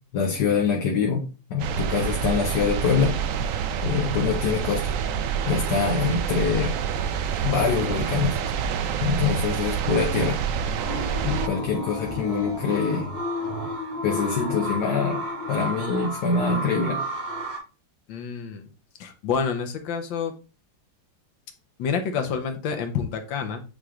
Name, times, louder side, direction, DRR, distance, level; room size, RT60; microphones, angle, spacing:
voice 1, 0.1-3.2 3.8-4.9 5.5-6.8 7.4-8.4 9.0-10.4 11.2-13.1 14.0-17.0, left 5 dB, 65° left, 1 dB, 1.6 m, -24 dB
sound 1, 1.6-11.5, right 7 dB, 85° right, 0.7 m, -27 dB
sound 2, 10.7-17.6, left 1 dB, 70° right, 2.6 m, -31 dB
voice 2, 18.1-18.7 19.0-20.3 21.8-23.6, left 6 dB, 80° left, 6 dB, 1.7 m, -28 dB
9.1 x 3.2 x 3.7 m, 0.32 s
omnidirectional pair, 2.0 m